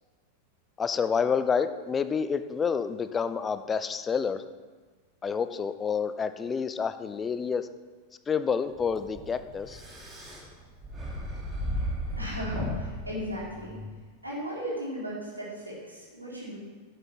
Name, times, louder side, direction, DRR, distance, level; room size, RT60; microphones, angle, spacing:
voice 1, 0.8-4.4 5.2-7.7 8.3-9.8, left 6 dB, 20° left, 11 dB, 0.7 m, -28 dB
sound 1, 8.7-13.9, equal, 20° right, 3.3 m, -35 dB
voice 2, 12.2-13.8 14.2-16.6, equal, 85° right, -6 dB, 3.9 m, -36 dB
11.0 x 9.1 x 5.8 m, 1.4 s
figure-of-eight pair, 90°, 0 cm